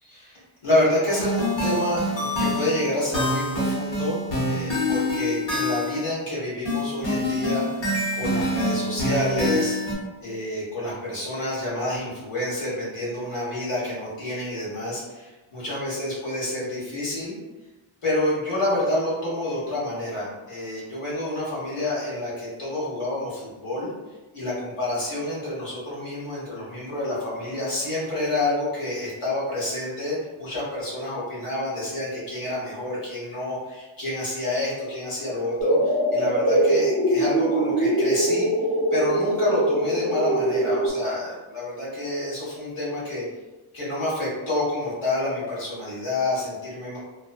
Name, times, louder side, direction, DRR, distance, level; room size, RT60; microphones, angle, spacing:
voice 1, 0.0-9.8 10.2-17.3 18.0-23.9 24.3-38.5 38.9-43.2 43.7-47.0, left 1 dB, 85° left, -8 dB, 1.5 m, -28 dB
sound 1, 1.1-6.1 6.7-9.9, left 1 dB, 60° left, 1.2 m, -26 dB
sound 2, 35.6-40.9, right 1 dB, 30° left, 0.8 m, -22 dB
3.1 x 2.1 x 2.5 m, 1.1 s
cardioid pair, 50°, 49 cm